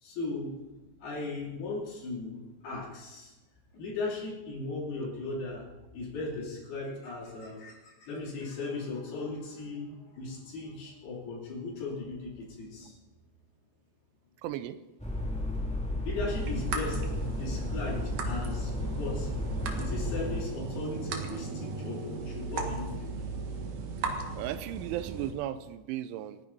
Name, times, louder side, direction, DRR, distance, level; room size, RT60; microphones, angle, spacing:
voice 1, 0.0-0.5 1.0-3.3 3.7-5.6 5.9-13.0 16.0-17.0 17.4-19.3 19.8-23.1, left 3 dB, 60° left, -3 dB, 4.8 m, -37 dB
voice 2, 14.4-14.8 24.4-26.4, right 12 dB, 90° right, 13 dB, 3.1 m, -35 dB
sound 1, 15.0-20.4, left 1 dB, 5° left, 0.5 m, -33 dB
sound 2, 16.3-25.3, right 4 dB, 55° right, 2.7 m, -37 dB
28.5 x 10.5 x 4.1 m, 1.1 s
omnidirectional pair, 5.3 m